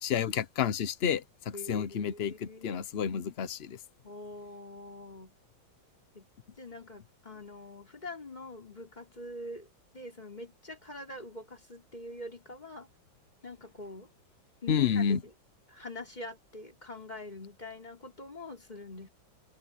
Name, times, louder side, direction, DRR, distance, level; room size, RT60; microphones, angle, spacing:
voice 1, 0.0-3.8 14.7-15.2, left 8 dB, 80° left, 0.5 m, -30 dB
voice 2, 1.5-2.8 4.0-5.4 6.1-9.7 9.9-12.9 13.4-14.1 14.6-15.3 15.7-19.1, left 2 dB, 20° left, 4.1 m, -44 dB
omnidirectional pair, 2.2 m